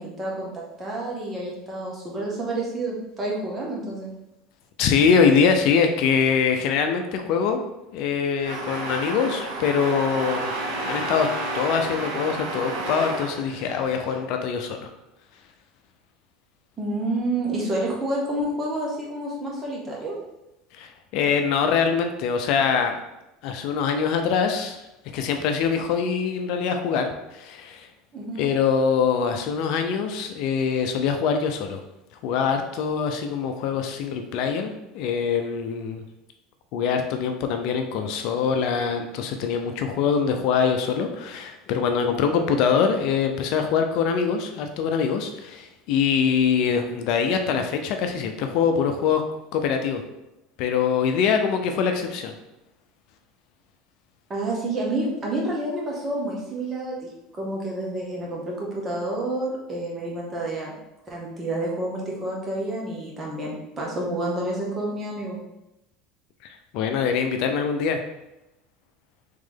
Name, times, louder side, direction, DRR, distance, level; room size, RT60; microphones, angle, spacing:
voice 1, 0.0-4.1 16.8-20.2 28.1-28.4 54.3-57.0 57.3-60.7 61.1-65.4, right 1 dB, 25° right, -3 dB, 1.5 m, -29 dB
voice 2, 4.8-7.6 7.9-10.5 10.8-11.3 11.5-14.9 20.7-23.0 23.4-24.8 25.1-27.9 28.4-31.8 32.2-36.0 36.7-49.2 49.5-50.0 50.6-52.3 66.4-68.0, left 6 dB, 65° left, 5 dB, 0.5 m, -23 dB
sound 1, 8.4-14.2, right 2 dB, 80° right, 1.3 m, -31 dB
3.7 x 3.2 x 3.6 m, 0.92 s
hypercardioid pair, 90°, 0 cm